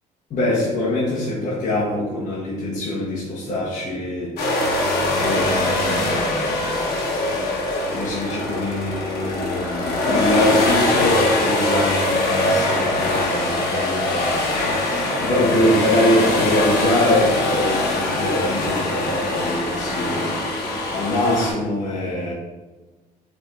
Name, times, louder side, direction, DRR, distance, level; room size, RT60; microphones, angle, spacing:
voice 1, 0.3-4.4 5.2-6.8 7.9-14.4 15.2-20.3 20.9-22.3, left 1 dB, 45° left, -6 dB, 1.1 m, -23 dB
sound 1, 4.4-21.5, left 1 dB, 70° left, 1.0 m, -22 dB
4.8 x 3.5 x 2.5 m, 1.2 s
cardioid pair, 110°, 17 cm